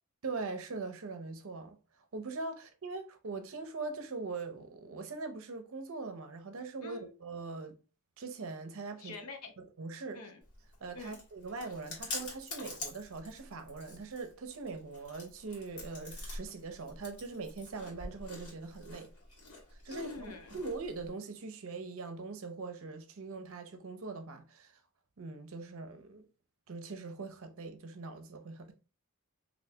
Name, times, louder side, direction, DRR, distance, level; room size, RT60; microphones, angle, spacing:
voice 1, 0.2-1.8 2.1-7.8 8.2-9.2 9.6-10.3 10.8-19.1 19.8-24.7 25.2-26.3 26.7-28.7, right 3 dB, 65° right, 0.6 m, -42 dB
voice 2, 6.8-7.1 9.0-9.5 10.1-10.4 10.9-11.2 19.9-20.6, left 4 dB, 90° left, 0.8 m, -45 dB
Chewing mastication, 10.4-21.1, left 2 dB, 70° left, 1.4 m, -46 dB
3.3 x 2.6 x 2.7 m
head